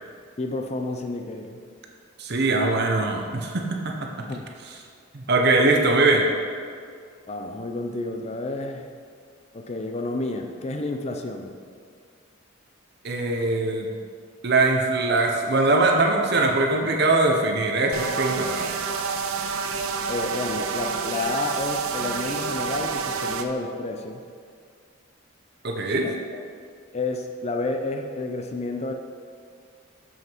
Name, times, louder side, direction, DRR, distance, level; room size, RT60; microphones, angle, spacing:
voice 1, 0.4-1.6 4.3-4.5 7.3-8.9 9.5-11.6 20.1-24.2 26.0-26.1 26.9-28.9, left 2 dB, 30° left, 4 dB, 0.4 m, -30 dB
voice 2, 2.2-3.8 5.1-6.3 13.0-13.9 14.4-18.7 25.6-26.1, right 2 dB, 50° right, 2 dB, 0.7 m, -21 dB
sound 1, 17.9-23.4, right 5 dB, 85° right, 0.6 m, -28 dB
7.2 x 6.4 x 4.5 m, 2.2 s
head